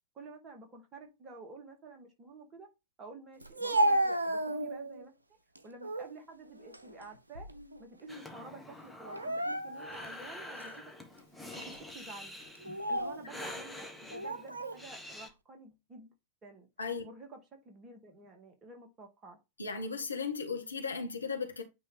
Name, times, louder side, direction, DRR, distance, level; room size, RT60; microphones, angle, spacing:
voice 1, 0.1-2.7 3.0-5.1 5.6-7.5 7.8-10.9 11.5-12.4 12.9-13.9 14.1-16.1 16.4-16.7 17.0-19.4, right 3 dB, 25° right, 2.0 m, -50 dB
Speech, 3.4-5.0 5.5-6.1 6.6-7.8 8.0-8.3 9.0-10.0 10.6-10.7 11.5-11.8 12.5-13.2 14.1-14.8, right 1 dB, 80° right, 0.6 m, -33 dB
Breathing, 8.1-15.3, left 1 dB, ahead, 1.2 m, -47 dB
voice 2, 19.6-21.6, left 5 dB, 75° left, 1.2 m, -36 dB
8.9 x 3.0 x 3.4 m
figure-of-eight pair, 90°, 0 cm